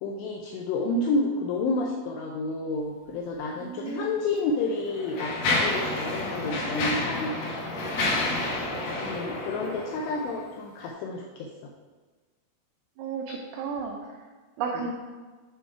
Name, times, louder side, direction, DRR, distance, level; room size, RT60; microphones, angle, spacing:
voice 1, 0.0-7.4 9.0-11.5 14.7-14.9, left 2 dB, 85° left, 0 dB, 2.5 m, -30 dB
voice 2, 3.7-4.1 8.0-8.5 13.0-14.0 14.6-14.9, right 5 dB, 90° right, 1 dB, 2.3 m, -33 dB
Mechanisms, 3.8-3.9 4.7-10.4, left 2 dB, 65° left, 2.3 m, -29 dB
8.0 x 4.2 x 4.5 m, 1.4 s
omnidirectional pair, 5.6 m